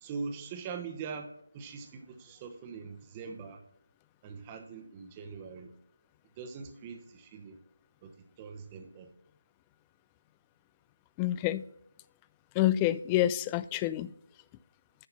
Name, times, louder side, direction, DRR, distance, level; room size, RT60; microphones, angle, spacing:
voice 1, 0.0-3.6 4.2-5.7 6.4-7.6 8.0-9.1, right 5 dB, 20° right, 5 dB, 1.0 m, -42 dB
voice 2, 11.2-11.6 12.6-14.1, left 13 dB, 15° left, 16 dB, 0.3 m, -27 dB
9.7 x 5.7 x 5.6 m, 0.74 s
figure-of-eight pair, 155°, 0 cm